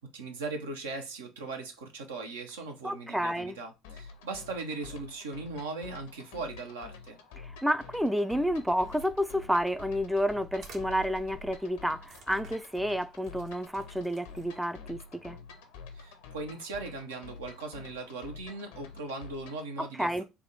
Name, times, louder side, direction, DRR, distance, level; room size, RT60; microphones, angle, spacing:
voice 1, 0.1-7.2 15.9-20.2, right 3 dB, 80° right, 0.6 m, -39 dB
voice 2, 2.8-3.6 7.4-15.4 19.8-20.2, equal, 5° right, 0.3 m, -30 dB
sound 1, 3.8-19.7, left 5 dB, 75° left, 0.5 m, -48 dB
sound 2, 8.4-14.8, right 5 dB, 60° right, 0.9 m, -53 dB
3.5 x 2.2 x 4.0 m
hypercardioid pair, 60°, 0 cm